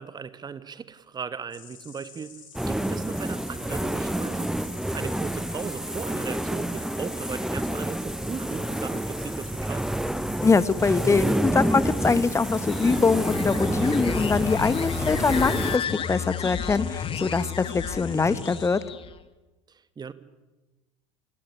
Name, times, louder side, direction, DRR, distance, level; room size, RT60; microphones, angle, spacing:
voice 1, 0.0-2.3 2.7-4.5 4.9-9.9 19.7-20.1, right 6 dB, 25° right, 15 dB, 1.7 m, -37 dB
Insect, 1.5-18.7, left 6 dB, 75° left, 5.7 m, -48 dB
sound 1, 2.5-15.8, right 1 dB, 5° right, 0.8 m, -28 dB
voice 2, 10.4-18.8, left 4 dB, 15° left, 17 dB, 1.3 m, -23 dB
sound 2, 12.6-19.2, left 8 dB, 30° left, 1.7 m, -32 dB
28.0 x 17.0 x 9.8 m, 1.1 s
figure-of-eight pair, 70°, 17 cm